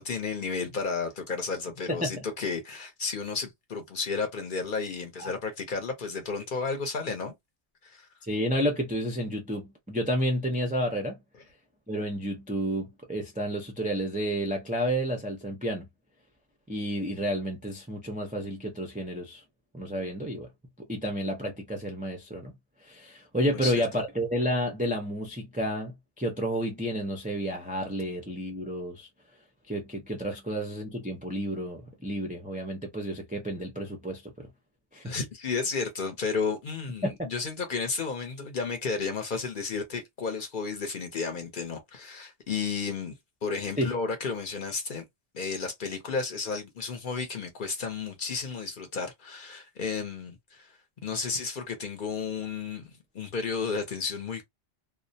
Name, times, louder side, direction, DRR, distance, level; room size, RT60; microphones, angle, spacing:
voice 1, 0.0-7.3 7.8-8.1 23.5-24.0 35.0-43.1 43.4-45.0 45.3-50.7 51.0-54.4, left 4 dB, 50° left, 0.8 m, -32 dB
voice 2, 8.2-11.2 11.9-15.9 16.7-19.4 19.7-20.5 20.9-22.5 22.8-29.1 29.7-34.5 34.9-35.1 37.0-37.3 43.8-43.9, equal, 15° right, 0.3 m, -31 dB
2.3 x 2.1 x 2.6 m
omnidirectional pair, 1.2 m